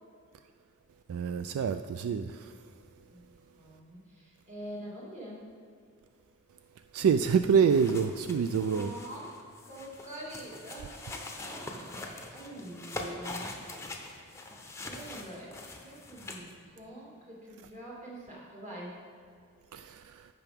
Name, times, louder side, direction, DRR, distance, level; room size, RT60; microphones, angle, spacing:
voice 1, 1.1-2.5 6.9-8.9 19.7-20.3, right 6 dB, 80° right, 0.3 m, -27 dB
voice 2, 3.6-5.4 8.6-9.3 9.6-13.5 14.2-14.4 14.8-19.0, right 1 dB, 35° right, 2.3 m, -45 dB
sound 1, 7.4-16.5, left 2 dB, 15° left, 0.7 m, -43 dB
15.0 x 5.7 x 3.5 m
head